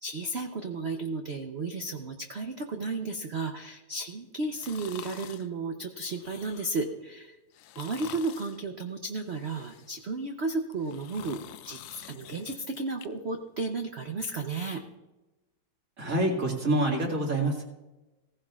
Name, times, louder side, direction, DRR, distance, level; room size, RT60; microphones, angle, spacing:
voice 1, 0.0-7.4 7.8-11.4 11.6-14.8, right 3 dB, 75° right, 4 dB, 0.6 m, -33 dB
sound 1, 4.5-5.5 6.1-6.8 7.5-8.6 9.2-10.1 10.6-13.1 13.5-13.6, left 12 dB, 75° left, 1.2 m, -47 dB
voice 2, 16.0-17.6, right 1 dB, 45° right, 0 dB, 2.4 m, -26 dB
17.0 x 15.5 x 2.4 m, 1.0 s
omnidirectional pair, 2.2 m